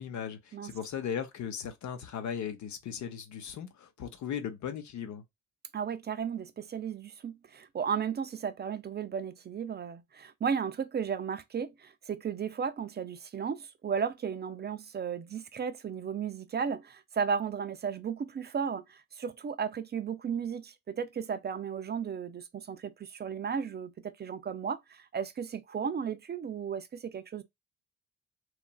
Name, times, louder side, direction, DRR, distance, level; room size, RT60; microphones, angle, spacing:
voice 1, 0.0-5.2, left 8 dB, 70° left, 0.8 m, -37 dB
voice 2, 5.7-27.4, right 7 dB, 35° right, 0.4 m, -34 dB
3.1 x 2.4 x 2.2 m
cardioid pair, 90°, 30 cm